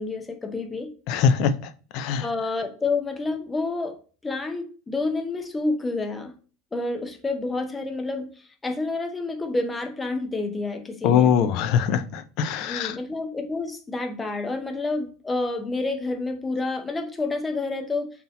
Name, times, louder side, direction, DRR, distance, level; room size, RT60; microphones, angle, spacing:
voice 1, 0.0-0.9 2.2-6.3 6.7-8.3 8.6-11.3 12.7-18.1, left 3 dB, 15° left, 0.6 m, -29 dB
voice 2, 1.1-2.3 11.0-13.0, left 7 dB, 55° left, 0.4 m, -22 dB
3.9 x 2.8 x 3.9 m
supercardioid pair, 130°, 0 cm